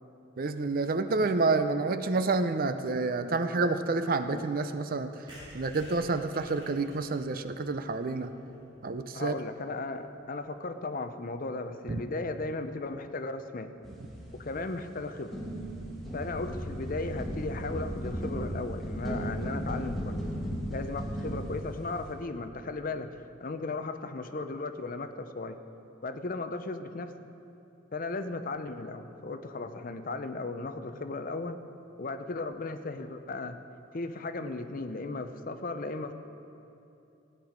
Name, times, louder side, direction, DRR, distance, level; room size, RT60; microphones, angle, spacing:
voice 1, 0.4-5.3 5.5-8.3 8.8-9.4 11.9-12.0, right 3 dB, 45° right, 9 dB, 0.5 m, -29 dB
sound 1, 5.3-9.0 9.4-9.5 9.7-9.8 10.0-10.1 10.3-10.5, equal, 25° right, 3.7 m, -53 dB
voice 2, 9.1-13.7 14.3-15.4 16.1-20.2 20.7-25.6 26.0-27.1 27.9-31.6 32.0-33.6 33.9-36.1, left 3 dB, 45° left, 9 dB, 0.6 m, -36 dB
sound 2, 13.8-14.9 15.3-22.1, equal, ahead, 2.0 m, -36 dB
16.0 x 9.8 x 5.1 m, 2.8 s
head